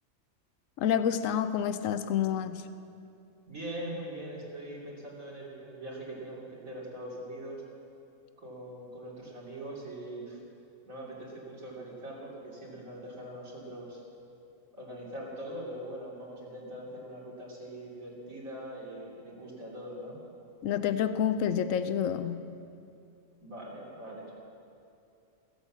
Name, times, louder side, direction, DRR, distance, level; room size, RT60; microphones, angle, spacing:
voice 1, 0.8-2.6 20.6-22.4, left 8 dB, 75° left, 11 dB, 1.1 m, -28 dB
voice 2, 3.5-7.6 8.4-10.4 10.9-14.0 14.7-20.2 23.4-24.3, right 1 dB, 85° right, -6 dB, 3.6 m, -42 dB
16.0 x 8.9 x 7.3 m, 2.5 s
omnidirectional pair, 1.4 m